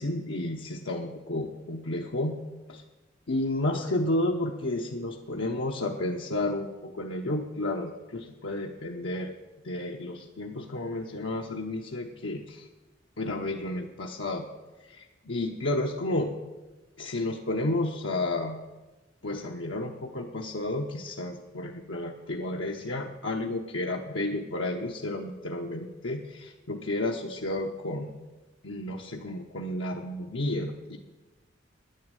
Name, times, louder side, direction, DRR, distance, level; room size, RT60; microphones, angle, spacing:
voice 1, 0.0-2.4 2.7-2.8 3.3-9.4 9.6-12.7 13.2-14.5 14.9-16.3 17.0-18.6 19.2-28.1 28.6-31.0, left 1 dB, 75° left, 0 dB, 1.0 m, -31 dB
10.0 x 9.5 x 8.9 m, 1.1 s
head